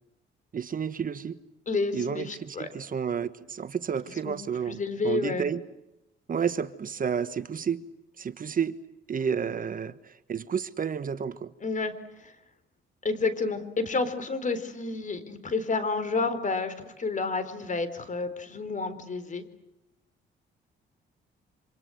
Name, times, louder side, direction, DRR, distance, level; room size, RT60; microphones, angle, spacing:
voice 1, 0.5-1.4 1.9-5.6 6.3-7.8 8.2-8.8 9.1-11.5, right 7 dB, 45° right, 12 dB, 1.4 m, -31 dB
voice 2, 1.7-2.7 4.2-4.3 4.7-5.5 11.6-11.9 12.2-12.3 13.0-19.4, left 3 dB, 40° left, 12 dB, 4.1 m, -30 dB
27.5 x 26.0 x 7.9 m, 0.88 s
cardioid pair, 90°, 20 cm